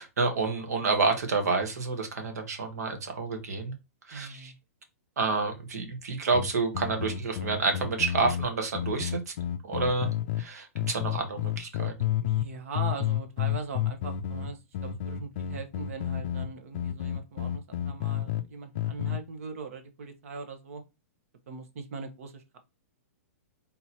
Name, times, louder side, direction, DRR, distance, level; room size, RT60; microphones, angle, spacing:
voice 1, 0.0-3.7 4.1-4.5 5.2-9.3 9.6-10.1 10.4-12.1, right 4 dB, 85° right, 1.5 m, -29 dB
voice 2, 4.1-4.6 12.2-20.8 21.5-22.6, right 4 dB, 60° right, 1.1 m, -40 dB
sound 1, 6.3-10.4 10.8-12.5 12.7-18.4 18.8-19.2, left 11 dB, 45° left, 0.4 m, -31 dB
3.8 x 2.9 x 4.3 m
hypercardioid pair, 165°, 8 cm